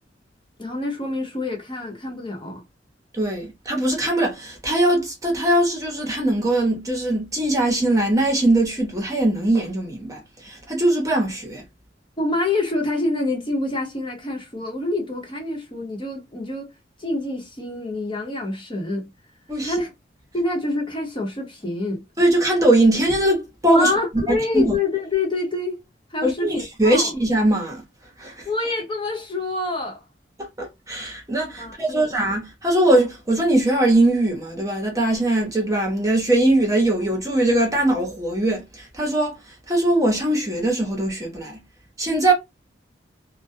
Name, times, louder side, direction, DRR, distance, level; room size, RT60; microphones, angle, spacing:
voice 1, 0.6-2.6 12.2-16.7 17.0-19.1 19.6-19.9 20.3-22.0 23.7-25.8 26.1-27.1 28.4-30.0 31.6-32.1 42.2-42.3, left 2 dB, 30° left, 0.8 m, -26 dB
voice 2, 3.1-11.6 19.5-19.8 22.2-23.9 24.3-24.7 26.2-27.8 28.2-28.5 30.4-41.6 42.0-42.3, right 1 dB, 20° right, 0.8 m, -21 dB
2.2 x 2.1 x 2.5 m
head